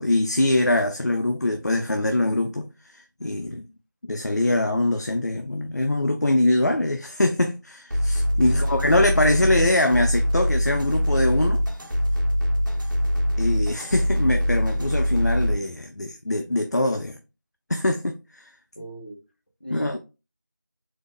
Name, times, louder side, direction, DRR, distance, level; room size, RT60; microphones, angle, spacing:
voice 1, 0.0-3.7 4.0-11.6 13.4-17.2 17.7-18.5 19.7-20.0, left 1 dB, 55° left, 0.4 m, -23 dB
sound 1, 7.9-15.5, equal, 70° right, 1.3 m, -23 dB
voice 2, 8.5-8.8 18.7-19.2 19.6-20.0, right 1 dB, 30° left, 0.9 m, -38 dB
4.1 x 2.0 x 3.6 m
figure-of-eight pair, 175°, 11 cm